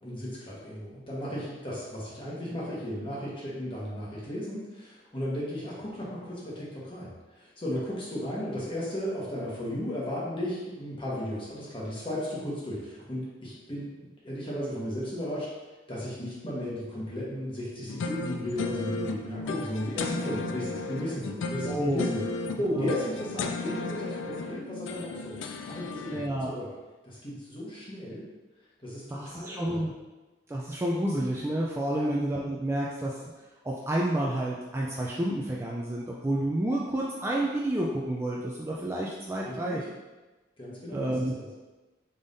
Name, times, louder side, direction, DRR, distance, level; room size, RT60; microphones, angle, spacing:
voice 1, 0.0-7.1 7.4-13.9 14.2-15.5 15.9-22.2 22.6-25.4 25.7-26.7 27.0-28.3 28.8-29.8 31.9-32.1 39.4-39.9 40.6-41.5, equal, 30° left, -6 dB, 1.2 m, -35 dB
sound 1, 17.9-26.3, left 4 dB, 90° left, 0.3 m, -35 dB
voice 2, 21.7-22.1 22.8-22.9 26.1-26.5 29.1-29.9 30.5-33.1 33.6-39.8 40.9-41.3, right 1 dB, 15° right, -4 dB, 0.3 m, -29 dB
5.3 x 3.5 x 2.6 m, 1.2 s
head